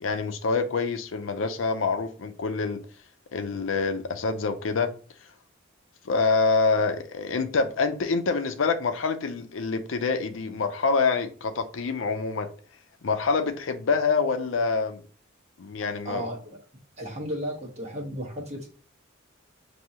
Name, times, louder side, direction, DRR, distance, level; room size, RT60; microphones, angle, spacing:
voice 1, 0.0-2.8 3.3-4.9 6.0-12.5 13.0-15.0 15.6-16.3, left 4 dB, 75° left, 0.5 m, -26 dB
voice 2, 16.0-16.6 17.0-18.7, equal, 35° right, 1.2 m, -34 dB
6.1 x 2.7 x 2.8 m
head